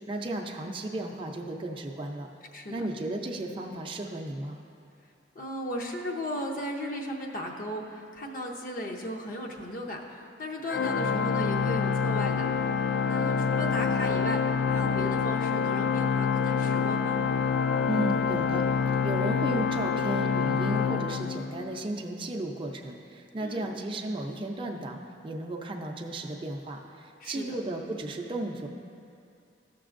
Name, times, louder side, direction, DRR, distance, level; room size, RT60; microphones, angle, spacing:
voice 1, 0.1-2.3 2.7-4.6 17.9-18.6 19.0-28.7, right 1 dB, 30° right, 1 dB, 0.5 m, -34 dB
voice 2, 5.3-12.5 13.0-14.4 14.7-17.2 23.4-23.7 27.2-27.5, equal, 50° left, 0 dB, 0.7 m, -36 dB
Organ, 10.7-21.9, left 6 dB, 75° left, 0.3 m, -27 dB
14.5 x 6.1 x 2.5 m, 2.5 s
head